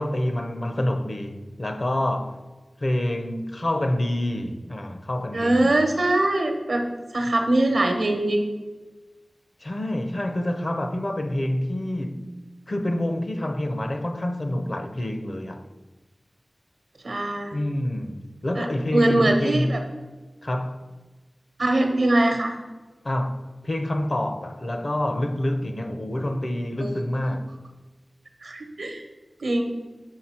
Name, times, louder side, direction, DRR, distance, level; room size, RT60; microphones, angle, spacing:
voice 1, 0.0-2.4 2.8-5.8 9.6-12.3 12.7-15.6 17.5-19.9 20.4-20.9 23.0-27.6, left 1 dB, 50° left, 0.6 m, -27 dB
voice 2, 5.3-6.8 7.1-8.4 17.0-17.6 18.6-18.7 18.9-19.8 21.6-22.5 26.8-27.4 28.4-29.0 29.4-29.6, right 1 dB, 85° right, 0.9 m, -22 dB
6.4 x 3.8 x 4.3 m
wide cardioid pair, 45°, 0 cm